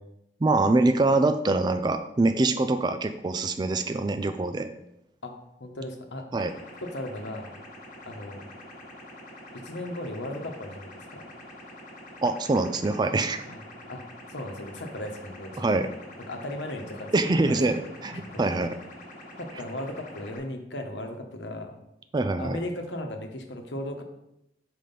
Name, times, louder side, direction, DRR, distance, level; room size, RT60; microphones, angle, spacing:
voice 1, 0.4-4.7 6.3-6.5 12.2-13.4 15.6-15.9 17.1-18.7 22.1-22.6, right 2 dB, 25° right, 9 dB, 0.3 m, -24 dB
voice 2, 5.6-6.2 6.8-7.5 8.0-8.4 9.5-11.3 13.5-13.6 13.9-14.0 14.3-15.8 16.3-17.1 17.5-17.8 18.1-18.5 19.4-21.8 22.4-24.0, left 1 dB, 85° left, 4 dB, 1.1 m, -36 dB
sound 1, 6.4-20.4, left 1 dB, 45° left, 1.5 m, -46 dB
5.9 x 5.0 x 5.3 m, 0.86 s
head